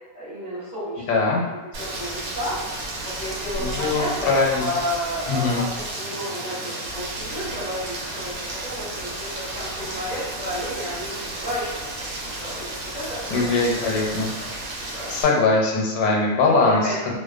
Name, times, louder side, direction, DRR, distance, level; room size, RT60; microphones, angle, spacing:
voice 1, 0.1-1.2 1.8-2.6 3.0-11.8 12.2-13.8 14.1-14.5 14.8-15.2 16.6-17.2, equal, 35° right, -12 dB, 1.1 m, -32 dB
voice 2, 1.1-1.4 3.6-4.7 5.3-5.6 13.3-14.3 15.1-17.1, left 3 dB, 90° left, -1 dB, 1.0 m, -21 dB
Rain, 1.7-15.2, right 2 dB, 90° right, 1.1 m, -33 dB
2.5 x 2.2 x 2.4 m, 1.2 s
omnidirectional pair, 1.5 m